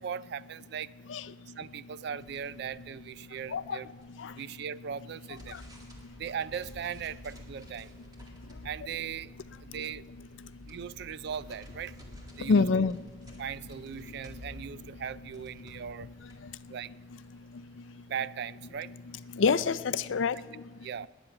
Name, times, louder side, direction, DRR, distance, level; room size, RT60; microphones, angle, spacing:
voice 1, 0.0-0.9 1.6-3.9 4.4-5.6 6.2-7.9 8.6-9.3 9.6-10.0 10.7-11.9 12.4-12.9 13.4-16.1 16.7-16.9 18.1-18.9 20.8-21.1, right 8 dB, 55° right, 0.3 m, -38 dB
sound 1, 2.2-4.6 4.9-17.9, left 1 dB, 20° right, 1.9 m, -53 dB
sound 2, 5.8-14.6, left 1 dB, 90° right, 5.3 m, -54 dB
voice 2, 12.5-13.0 19.3-20.4, left 4 dB, 75° left, 0.5 m, -25 dB
19.0 x 10.0 x 5.8 m
head